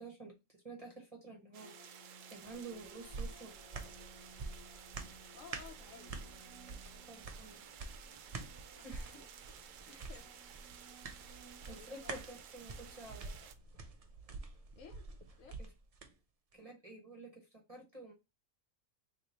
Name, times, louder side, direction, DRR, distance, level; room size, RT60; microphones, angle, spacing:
voice 1, 0.0-1.7 2.3-4.1 7.0-7.7 8.8-9.2 9.9-10.0 11.6-13.2 15.6-15.7 16.5-18.1, right 3 dB, 30° right, 0.8 m, -51 dB
sound 1, 1.5-13.5, right 8 dB, 70° right, 0.9 m, -55 dB
sound 2, 1.6-13.2, right 1 dB, 25° left, 0.9 m, -61 dB
sound 3, 2.4-16.1 16.5-16.6, right 3 dB, 55° right, 0.4 m, -48 dB
voice 2, 5.3-6.4 6.9-7.1 8.2-8.4 8.8-8.9 9.2-9.6 10.1-10.3 11.7-12.2 12.8-13.5 14.7-15.6, left 6 dB, 70° left, 1.1 m, -57 dB
3.1 x 3.0 x 4.0 m
omnidirectional pair, 1.5 m